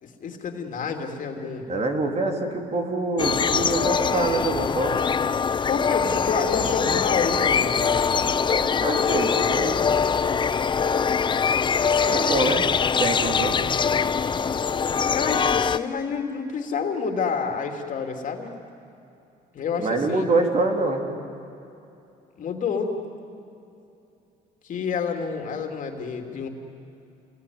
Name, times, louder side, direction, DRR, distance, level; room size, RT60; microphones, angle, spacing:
voice 1, 0.0-1.8 5.7-8.4 12.4-12.5 15.1-18.5 19.5-20.3 22.4-23.0 24.6-26.5, left 5 dB, 50° left, 3 dB, 2.9 m, -29 dB
voice 2, 1.7-5.0 8.6-9.8 12.0-12.6 13.0-13.6 19.8-21.0, right 2 dB, 40° right, 3 dB, 3.2 m, -25 dB
sound 1, 3.2-15.8, left 6 dB, 30° left, 0.6 m, -23 dB
28.0 x 20.0 x 9.6 m, 2.7 s
cardioid pair, 110°, 17 cm